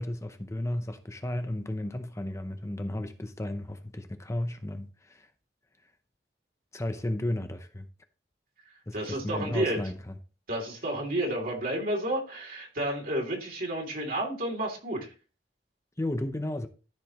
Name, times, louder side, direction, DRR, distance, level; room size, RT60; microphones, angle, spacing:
voice 1, 0.0-5.3 6.7-7.9 8.9-10.1 16.0-16.7, left 1 dB, 15° left, 0.7 m, -33 dB
voice 2, 8.9-9.8 10.5-15.1, right 1 dB, 55° right, 2.9 m, -31 dB
14.0 x 5.0 x 3.0 m
head